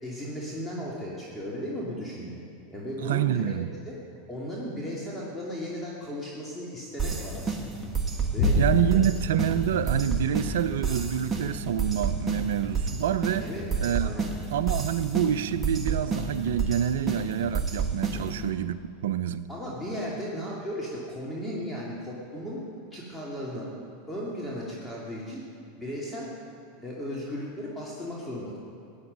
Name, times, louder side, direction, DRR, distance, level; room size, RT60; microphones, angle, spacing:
voice 1, 0.0-2.4 2.7-3.5 3.8-4.0 4.3-7.6 8.3-8.6 8.9-9.0 13.4-13.7 14.0-14.3 18.2-18.4 19.5-22.6 22.9-23.7 24.1-25.4 25.8-26.3 26.8-28.6, equal, 5° left, -6 dB, 2.6 m, -36 dB
voice 2, 3.0-3.7 8.6-13.5 13.8-14.1 14.5-18.8 19.0-19.5, right 10 dB, 70° right, 13 dB, 0.5 m, -27 dB
sound 1, 7.0-18.5, right 4 dB, 20° right, 1.6 m, -31 dB
sound 2, 8.4-16.9 17.4-17.5, left 2 dB, 70° left, 2.6 m, -33 dB
15.5 x 10.5 x 5.3 m, 2.6 s
hypercardioid pair, 95°, 0 cm